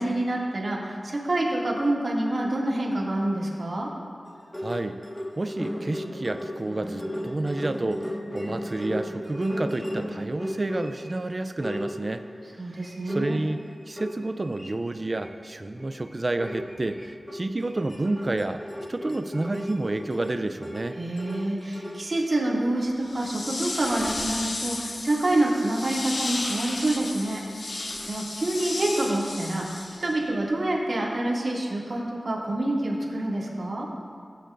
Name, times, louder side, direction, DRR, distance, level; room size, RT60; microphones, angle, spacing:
voice 1, 0.0-3.9 12.6-13.3 21.0-33.9, right 1 dB, 60° right, -4 dB, 2.3 m, -27 dB
sound 1, 4.3-11.2 11.6-12.3 12.8-14.7 15.1-15.4 15.7-15.9 16.4-22.0, equal, 15° left, 1.6 m, -35 dB
voice 2, 4.5-5.0 5.4-12.2 12.7-12.8 13.1-18.6 18.9-21.0, right 2 dB, 45° right, 9 dB, 0.4 m, -30 dB
sound 2, 23.0-30.3, left 2 dB, 65° left, 1.0 m, -34 dB
16.0 x 9.1 x 2.6 m, 2.1 s
cardioid pair, 40°, 0 cm